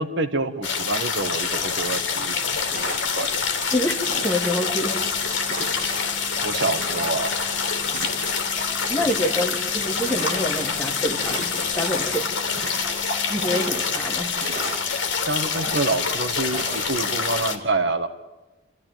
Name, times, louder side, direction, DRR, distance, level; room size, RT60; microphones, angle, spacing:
voice 1, 0.0-3.4 6.4-7.3 15.2-18.1, right 3 dB, 60° right, 9 dB, 1.6 m, -27 dB
sound 1, 0.6-17.6, left 5 dB, 65° left, 2.7 m, -26 dB
sound 2, 1.2-12.2, left 6 dB, 40° left, 2.3 m, -36 dB
sound 3, 2.2-2.3 2.7-3.5 4.0-4.8 5.4-6.2 6.8-7.5 7.9-8.6 8.9-9.5 10.0-10.8 11.2-12.0 12.4-13.0 13.3-14.0 14.4-15.2 15.6-16.2 16.5-16.9, right 2 dB, 40° right, 2.5 m, -37 dB
voice 2, 3.7-5.0 8.5-11.5 11.7-12.3 13.3-14.3, left 1 dB, 10° left, 3 dB, 2.2 m, -27 dB
28.5 x 14.5 x 9.2 m, 1.1 s
head